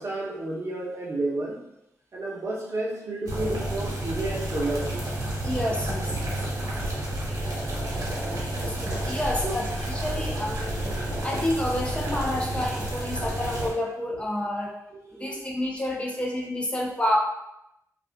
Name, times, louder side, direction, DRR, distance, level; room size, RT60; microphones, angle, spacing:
voice 1, 0.0-1.6 2.1-5.1 9.4-9.6 14.1-14.2 14.9-15.4, right 2 dB, 45° right, -4 dB, 0.8 m, -31 dB
sound 1, 3.3-13.7, right 1 dB, 65° right, 1.1 m, -30 dB
voice 2, 5.4-6.3 8.5-10.9 11.2-14.7 15.1-17.2, left 1 dB, 15° left, -1 dB, 0.4 m, -29 dB
2.5 x 2.3 x 3.4 m, 0.84 s
cardioid pair, 85°, 7 cm